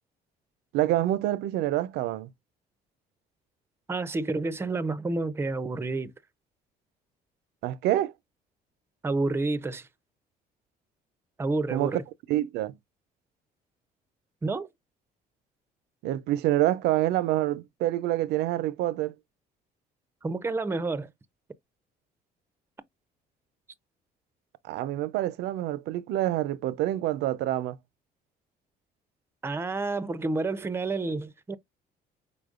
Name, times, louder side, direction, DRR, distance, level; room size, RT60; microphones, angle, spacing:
voice 1, 0.7-2.3 7.6-8.1 11.7-12.0 12.3-12.7 16.0-19.1 24.6-27.8, right 14 dB, 80° right, 0.5 m, -27 dB
voice 2, 3.9-6.1 9.0-9.9 11.4-12.0 14.4-14.7 20.2-21.1 29.4-31.6, right 3 dB, 15° right, 0.5 m, -29 dB
5.0 x 4.2 x 2.4 m
cardioid pair, 110°, 17 cm